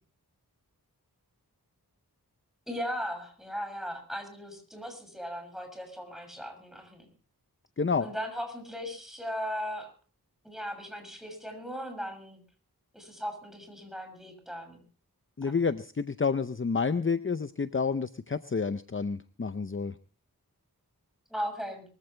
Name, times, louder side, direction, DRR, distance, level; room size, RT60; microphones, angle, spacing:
voice 1, 2.7-7.1 8.0-9.9 10.4-12.4 12.9-14.8 21.3-21.8, equal, ahead, 5 dB, 6.9 m, -37 dB
voice 2, 7.8-8.1 15.4-19.9, left 5 dB, 35° left, 12 dB, 0.6 m, -29 dB
23.0 x 15.0 x 3.3 m, 0.38 s
wide cardioid pair, 50°, 37 cm